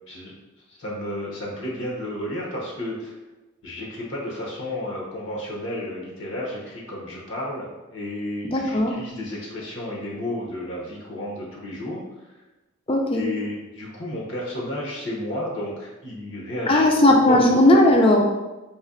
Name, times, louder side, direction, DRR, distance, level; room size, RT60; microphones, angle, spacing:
voice 1, 0.7-3.1 3.6-12.0 13.1-16.9 17.3-17.5, left 1 dB, 65° left, -3 dB, 0.8 m, -32 dB
voice 2, 8.5-8.9 12.9-13.3 16.7-18.2, left 1 dB, 25° left, 2 dB, 0.4 m, -17 dB
4.2 x 2.6 x 2.5 m, 1.1 s
head